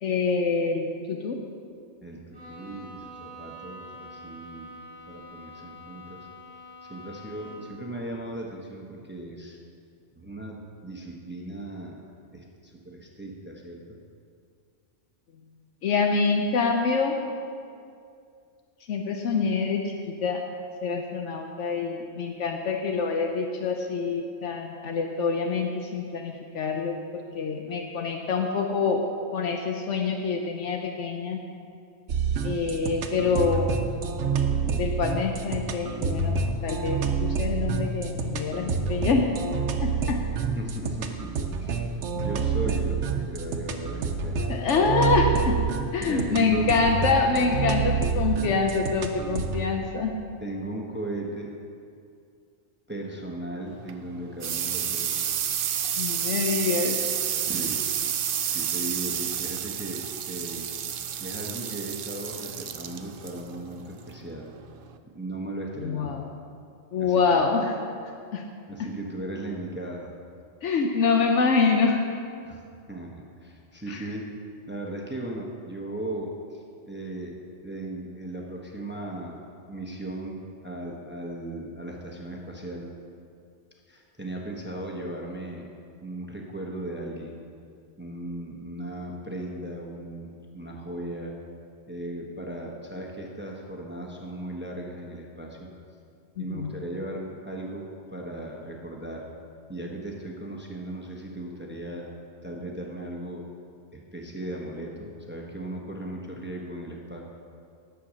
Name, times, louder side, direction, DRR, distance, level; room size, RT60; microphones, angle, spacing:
voice 1, 0.0-1.4 15.8-17.2 18.9-20.4 20.8-29.0 29.3-31.4 32.4-33.9 34.8-39.3 39.8-40.2 44.5-45.6 45.9-50.1 56.0-57.0 65.8-66.2 66.9-67.8 68.3-68.4 70.6-72.0 73.9-74.1 96.4-96.7, left 4 dB, 80° left, 3 dB, 1.1 m, -26 dB
voice 2, 2.0-4.7 5.1-6.3 6.8-9.6 10.1-12.1 12.3-14.0 40.5-41.9 42.1-44.5 46.0-46.7 50.4-51.5 52.9-55.3 57.5-57.9 58.4-60.7 61.2-64.5 65.1-66.2 67.0-67.5 68.7-70.1 72.4-72.6 72.9-74.3 74.7-82.9 83.9-85.7 86.0-87.4 88.0-91.4 91.9-95.7 96.4-99.3 99.7-102.1 102.4-103.4 103.9-107.2, right 1 dB, 10° right, -1 dB, 1.0 m, -37 dB
Bowed string instrument, 2.3-7.8, equal, 20° left, 2.4 m, -45 dB
sound 1, 32.1-49.7, right 5 dB, 80° right, 1.1 m, -28 dB
sound 2, 53.7-65.0, right 9 dB, 60° right, 0.6 m, -30 dB
10.5 x 7.4 x 6.3 m, 2.3 s
omnidirectional pair, 1.2 m